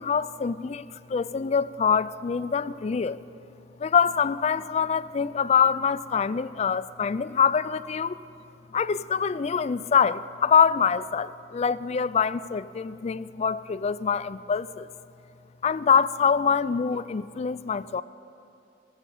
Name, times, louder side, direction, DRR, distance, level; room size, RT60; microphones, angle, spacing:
voice 1, 0.0-3.2 3.8-8.2 8.7-14.9 15.6-18.0, left 6 dB, 40° left, 16 dB, 0.3 m, -25 dB
19.0 x 7.3 x 8.4 m, 2.7 s
head